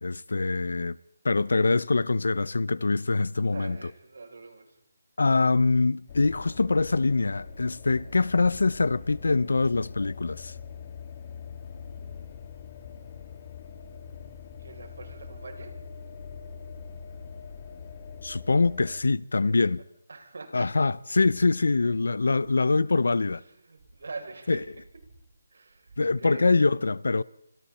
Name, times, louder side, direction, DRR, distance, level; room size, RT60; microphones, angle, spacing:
voice 1, 0.0-1.0 1.2-3.9 5.2-10.5 18.2-19.8 20.5-23.4 24.5-24.6 26.0-27.2, left 3 dB, 85° left, 0.8 m, -24 dB
voice 2, 3.5-4.7 14.6-15.7 19.4-19.5 20.1-20.7 23.7-24.7 25.5-25.9 26.2-26.6, right 3 dB, 75° right, 7.5 m, -43 dB
sound 1, 6.1-19.0, left 6 dB, 30° left, 3.3 m, -43 dB
sound 2, 21.1-26.2, right 3 dB, 45° right, 7.2 m, -55 dB
29.0 x 26.0 x 4.4 m
hypercardioid pair, 170°, 0 cm